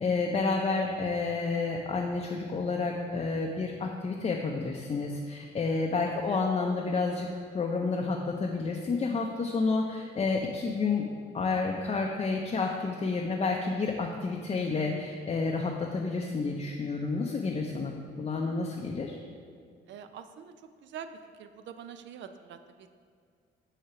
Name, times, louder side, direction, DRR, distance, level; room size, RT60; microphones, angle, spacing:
voice 1, 0.0-7.3 7.5-11.0 11.3-19.2, left 4 dB, 30° left, 0 dB, 0.5 m, -30 dB
voice 2, 5.9-6.4 19.9-20.5 20.8-21.1 21.4-22.9, right 8 dB, 65° right, 9 dB, 0.4 m, -45 dB
6.5 x 2.9 x 5.7 m, 2.1 s
cardioid pair, 90°, 20 cm